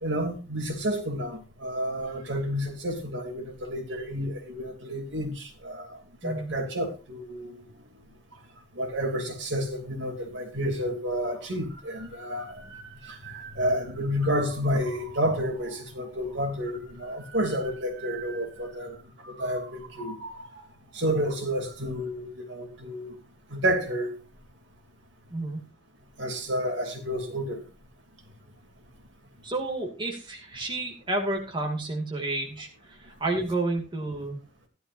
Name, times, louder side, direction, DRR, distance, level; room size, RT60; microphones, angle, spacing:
voice 1, 0.0-7.6 8.7-18.9 19.2-20.6 20.9-23.1 23.5-24.2 26.2-27.6, equal, 60° right, 3.0 m, -30 dB
voice 2, 6.2-6.6 25.3-25.6 29.4-34.4, right 2 dB, 25° right, 2.5 m, -31 dB
15.5 x 12.0 x 2.7 m
head